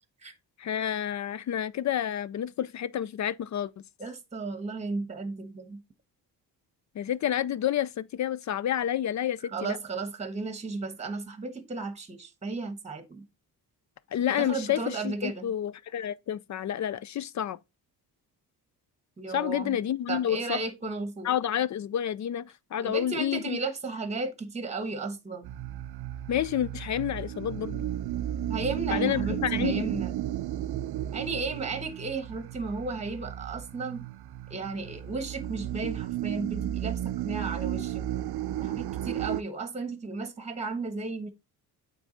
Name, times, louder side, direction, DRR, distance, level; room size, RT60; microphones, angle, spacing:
voice 1, 0.6-3.7 7.0-9.8 14.1-17.6 19.3-20.6 21.2-23.6 26.3-27.9 28.9-29.9, left 10 dB, 45° left, 0.4 m, -29 dB
voice 2, 4.0-5.8 9.5-13.3 14.4-15.5 19.2-19.8 20.1-21.3 22.8-25.5 28.5-30.1 31.1-34.0 34.5-38.1 38.6-41.3, right 3 dB, 15° right, 1.2 m, -34 dB
sound 1, 25.4-39.4, right 12 dB, 70° right, 0.6 m, -33 dB
8.6 x 3.8 x 3.8 m
cardioid pair, 100°, 40 cm